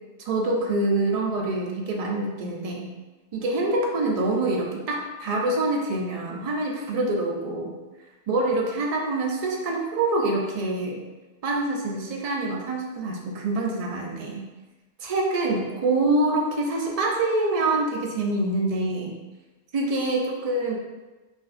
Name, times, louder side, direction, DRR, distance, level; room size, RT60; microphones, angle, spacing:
voice 1, 0.3-2.9 3.3-7.7 8.3-11.0 11.4-14.4 15.0-19.2 19.7-20.7, right 2 dB, 60° right, -1 dB, 0.3 m, -25 dB
3.4 x 2.5 x 2.3 m, 1.2 s
omnidirectional pair, 1.2 m